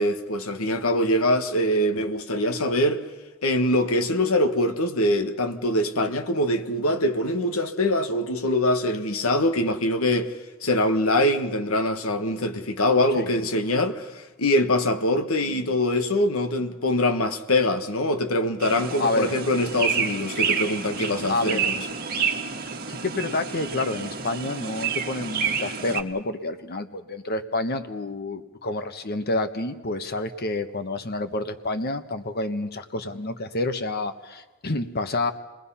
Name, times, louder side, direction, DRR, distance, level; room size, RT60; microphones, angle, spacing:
voice 1, 0.0-3.0 3.4-10.3 10.6-21.9, left 1 dB, 85° left, 1.5 m, -23 dB
sound 1, 18.6-26.0, right 6 dB, 50° right, 1.6 m, -29 dB
voice 2, 19.0-19.3 21.3-21.7 22.9-35.3, left 2 dB, 50° left, 1.3 m, -28 dB
28.0 x 20.0 x 5.7 m
head